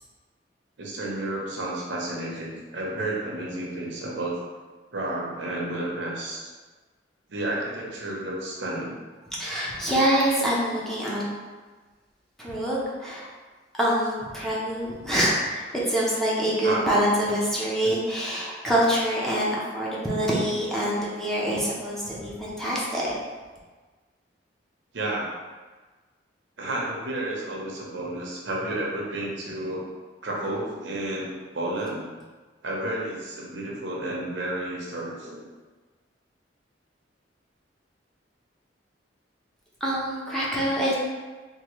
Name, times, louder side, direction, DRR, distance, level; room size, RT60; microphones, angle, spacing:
voice 1, 0.8-4.4 4.9-6.5 7.3-8.9 16.6-16.9 24.9-25.3 26.6-29.8 30.2-31.3 31.5-32.0 32.6-35.4, right 1 dB, 80° right, -3 dB, 0.8 m, -31 dB
voice 2, 9.4-11.2 12.4-13.3 13.7-23.1 39.8-40.9, equal, ahead, -7 dB, 0.7 m, -25 dB
3.7 x 2.6 x 3.0 m, 1.4 s
head